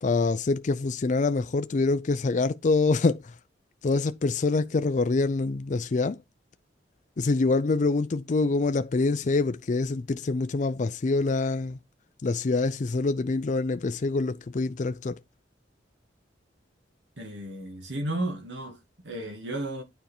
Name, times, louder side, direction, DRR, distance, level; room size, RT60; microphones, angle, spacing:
voice 1, 0.0-3.3 3.8-6.2 7.2-11.8 12.2-15.2, left 3 dB, 40° left, 0.4 m, -25 dB
voice 2, 17.2-19.8, right 1 dB, 75° right, 2.5 m, -33 dB
9.3 x 4.5 x 4.3 m
head